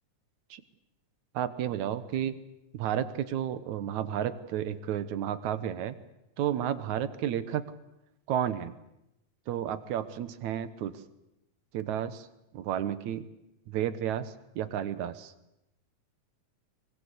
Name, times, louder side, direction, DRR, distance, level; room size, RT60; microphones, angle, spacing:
voice 1, 1.3-2.4 2.7-6.0 6.4-7.7 8.3-8.7 9.5-11.0 11.7-12.3 12.5-13.3 13.7-15.3, right 10 dB, 75° right, 12 dB, 2.5 m, -32 dB
23.5 x 23.0 x 8.3 m, 0.88 s
omnidirectional pair, 3.4 m